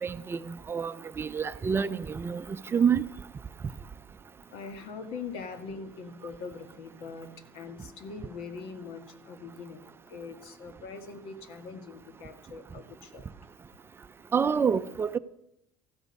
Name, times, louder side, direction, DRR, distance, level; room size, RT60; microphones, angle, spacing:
voice 1, 0.0-3.0 14.3-15.2, right 6 dB, 25° right, 0.5 m, -28 dB
voice 2, 4.5-13.3, left 4 dB, 70° left, 1.6 m, -42 dB
14.5 x 12.0 x 5.4 m
cardioid pair, 125°, 10 cm